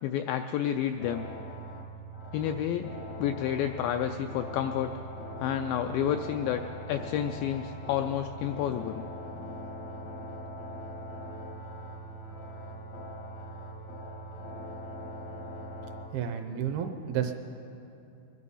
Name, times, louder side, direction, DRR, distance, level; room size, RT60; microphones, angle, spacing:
voice 1, 0.0-1.3 2.3-2.9 3.2-4.9 5.4-9.1, left 10 dB, 85° left, 7 dB, 2.0 m, -30 dB
sound 1, 1.0-16.1, equal, 65° left, 1.0 m, -41 dB
voice 2, 16.1-17.3, right 9 dB, 75° right, 6 dB, 2.6 m, -31 dB
22.5 x 11.0 x 5.5 m, 2.7 s
omnidirectional pair, 4.6 m